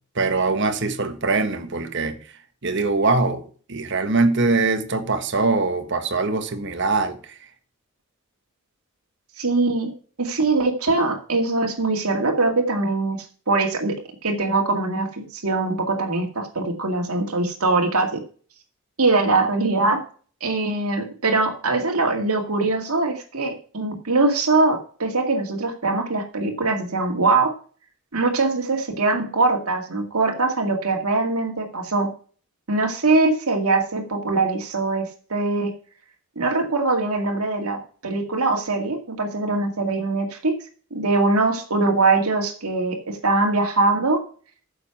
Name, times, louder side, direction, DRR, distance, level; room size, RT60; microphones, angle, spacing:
voice 1, 0.1-2.2 2.6-3.4 3.7-7.4, right 3 dB, 55° right, 1.4 m, -22 dB
voice 2, 9.4-9.9 10.2-13.2 13.5-13.9 14.2-18.2 19.0-20.0 20.4-27.5 28.1-32.1 32.7-35.7 36.4-40.5 40.9-44.2, right 3 dB, 90° right, 2.1 m, -22 dB
9.6 x 7.0 x 5.9 m
head